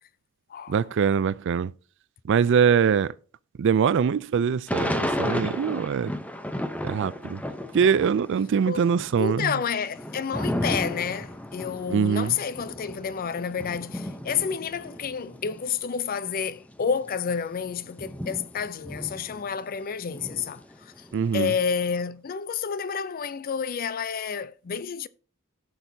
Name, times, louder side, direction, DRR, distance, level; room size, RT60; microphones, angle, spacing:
voice 1, 0.7-1.7 2.3-3.1 3.6-6.1 6.8-7.4 7.7-9.6 11.9-12.4 21.1-21.5, right 7 dB, 60° right, 0.4 m, -23 dB
Thunder / Rain, 4.7-8.3 8.6-15.7 16.3-16.4 16.6-19.8 20.1-21.8, left 1 dB, 5° left, 0.7 m, -33 dB
voice 2, 9.2-21.0 21.3-25.1, left 6 dB, 45° left, 0.4 m, -30 dB
17.5 x 6.4 x 2.7 m
head